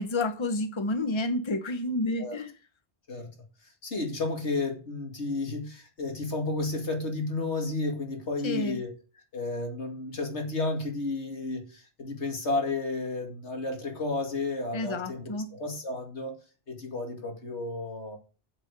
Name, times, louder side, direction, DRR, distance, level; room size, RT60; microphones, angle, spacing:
voice 1, 0.0-2.5 8.4-8.8 14.7-15.5, left 2 dB, 25° left, 1.0 m, -29 dB
voice 2, 3.8-16.4 16.7-18.2, left 2 dB, 75° left, 2.7 m, -32 dB
8.3 x 7.4 x 6.8 m
omnidirectional pair, 1.2 m